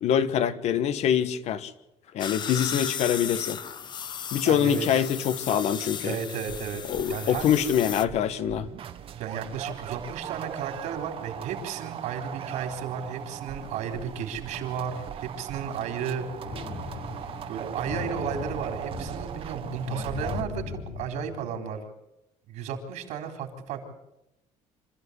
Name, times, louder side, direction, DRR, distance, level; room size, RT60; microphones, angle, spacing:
voice 1, 0.0-1.7 2.1-3.6 4.3-6.2 6.9-8.7, left 9 dB, 60° left, 13 dB, 1.4 m, -25 dB
sound 1, 2.2-8.0, left 7 dB, 35° left, 0.9 m, -35 dB
voice 2, 4.4-5.0 6.0-6.8 7.1-7.5 9.2-16.3 17.5-21.8 22.5-23.9, right 7 dB, 75° right, 5 dB, 4.0 m, -34 dB
sound 2, 6.4-20.4, right 9 dB, 45° right, 1.5 m, -39 dB
Thunder, 16.4-21.5, left 5 dB, 85° left, 4.4 m, -38 dB
26.5 x 14.0 x 8.2 m, 0.91 s
cardioid pair, 130°, 13 cm